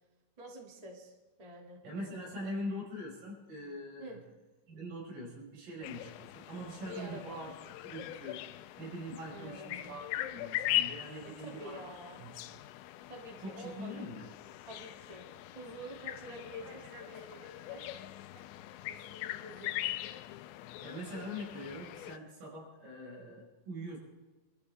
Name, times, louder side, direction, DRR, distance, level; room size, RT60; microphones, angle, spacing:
voice 1, 0.4-1.1 1.4-1.8 4.0-4.2 6.8-7.4 9.3-9.9 11.2-12.2 13.0-14.1 14.7-15.3 15.5-17.8 18.9-19.9, equal, 70° right, 0 dB, 0.3 m, -48 dB
voice 2, 1.8-4.2 4.7-7.5 7.8-8.4 8.8-11.9 12.2-12.6 13.4-14.3 16.2-18.0 18.3-18.5 20.8-24.0, equal, 85° right, -3 dB, 8.0 m, -43 dB
sound 1, 5.8-22.2, left 14 dB, 80° left, 2.7 m, -41 dB
26.5 x 13.5 x 3.5 m, 1.2 s
omnidirectional pair, 5.6 m